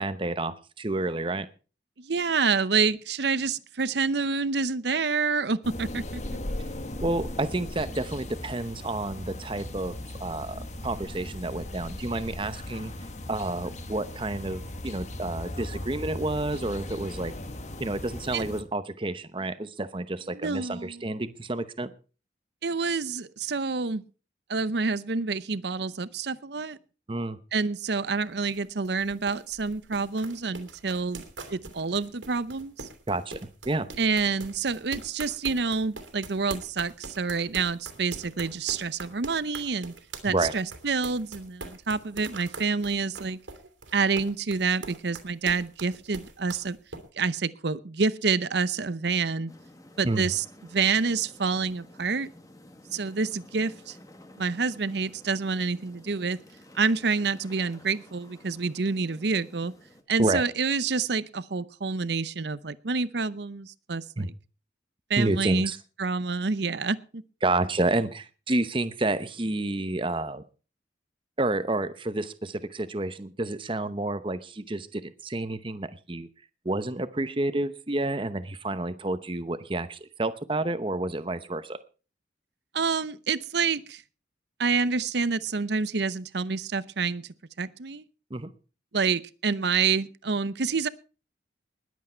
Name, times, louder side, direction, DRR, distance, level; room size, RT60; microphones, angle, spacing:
voice 1, 0.0-1.5 7.0-12.9 13.3-17.3 17.8-21.9 27.1-27.4 33.1-33.4 33.6-33.9 40.3-40.5 50.0-50.3 60.2-60.4 64.2-64.3 65.2-65.8 67.4-70.4 71.4-76.3 76.6-81.8 88.3-88.5, right 2 dB, 25° right, 12 dB, 0.8 m, -29 dB
voice 2, 2.0-6.2 18.3-18.4 20.3-21.0 22.6-24.0 24.5-26.8 27.5-31.2 31.5-32.9 34.0-39.9 40.2-43.4 43.9-46.8 47.2-49.5 50.0-50.4 50.7-52.3 52.9-54.0 54.4-56.4 56.7-59.7 60.1-64.3 65.1-65.7 66.0-67.2 82.7-84.0 84.6-87.2 87.6-88.0 88.9-90.9, right 4 dB, 60° right, 17 dB, 0.7 m, -28 dB
sound 1, 5.6-18.6, left 1 dB, 40° left, 1.2 m, -37 dB
sound 2, 28.0-47.0, right 3 dB, 90° right, 2.9 m, -43 dB
sound 3, 49.5-60.0, left 1 dB, 20° left, 1.5 m, -52 dB
20.5 x 8.4 x 4.5 m, 0.36 s
head